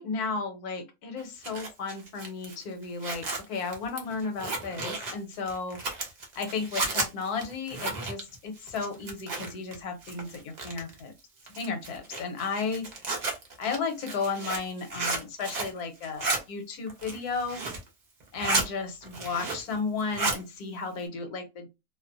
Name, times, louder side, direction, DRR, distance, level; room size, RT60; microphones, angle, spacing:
voice 1, 0.0-5.8 6.4-11.1 11.5-12.9 13.6-17.6 18.3-21.7, left 4 dB, 70° left, 1.2 m, -34 dB
Zipper (clothing), 1.2-9.8 10.0-11.0 11.5-15.8 16.0-16.4 16.9-17.9 18.2-18.7 19.0-19.7 20.0-20.4, right 3 dB, 65° right, 0.4 m, -33 dB
2.8 x 2.0 x 2.5 m
omnidirectional pair, 1.8 m